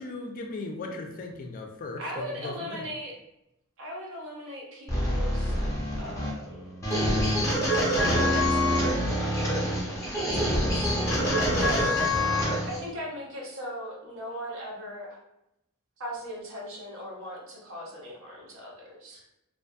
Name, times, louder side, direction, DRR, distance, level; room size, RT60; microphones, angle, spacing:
voice 1, 0.0-2.8 11.6-12.4, left 2 dB, 40° left, 2 dB, 0.3 m, -38 dB
voice 2, 0.8-1.2 2.0-3.1 3.8-5.6 6.0-6.7 7.7-11.0 11.3-11.9 12.6-15.2 16.0-19.2, equal, 65° right, -2 dB, 0.8 m, -39 dB
sound 1, 4.9-12.8, equal, 15° left, 0.7 m, -26 dB
2.5 x 2.4 x 2.2 m, 0.84 s
head